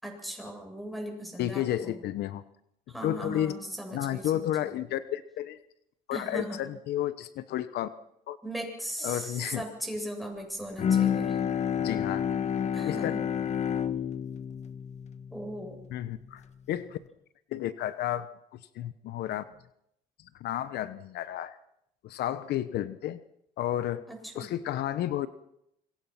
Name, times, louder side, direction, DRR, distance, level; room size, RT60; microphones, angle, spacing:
voice 1, 0.0-2.0 2.9-4.7 6.1-6.6 8.4-11.4 12.7-13.2 15.3-15.8 24.1-24.5, right 1 dB, ahead, 3 dB, 7.8 m, -38 dB
voice 2, 1.4-2.4 3.0-3.6 3.9-5.6 6.1-7.9 8.3-8.4 9.0-9.6 11.5-12.2 12.8-13.1 15.9-17.0 17.5-18.3 18.7-19.4 20.3-21.6 22.0-23.2 23.6-24.0 24.4-25.3, left 12 dB, 75° left, 13 dB, 1.1 m, -32 dB
Bowed string instrument, 10.8-16.2, left 8 dB, 40° left, 1.3 m, -30 dB
26.0 x 23.0 x 6.0 m, 0.76 s
cardioid pair, 110°, 17 cm